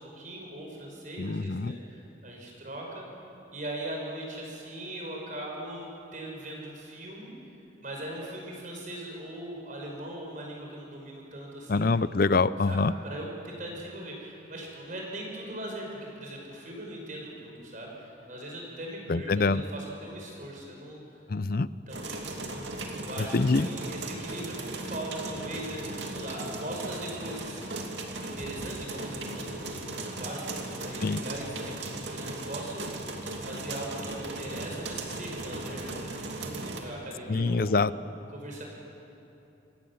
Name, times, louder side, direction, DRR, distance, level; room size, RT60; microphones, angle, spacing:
voice 1, 0.0-3.1 3.5-7.3 7.8-11.9 12.7-21.0 21.9-22.4 23.0-27.7 28.3-29.9 30.2-32.9 33.2-37.8 38.3-38.6, right 1 dB, 40° right, -1 dB, 5.5 m, -40 dB
voice 2, 1.2-1.8 11.7-12.9 19.1-19.6 21.3-21.7 23.3-23.7 31.0-31.2 37.3-37.9, left 3 dB, 50° left, 16 dB, 0.5 m, -25 dB
sound 1, 21.9-36.8, right 2 dB, 65° right, 2.5 m, -37 dB
26.5 x 18.0 x 7.3 m, 3.0 s
head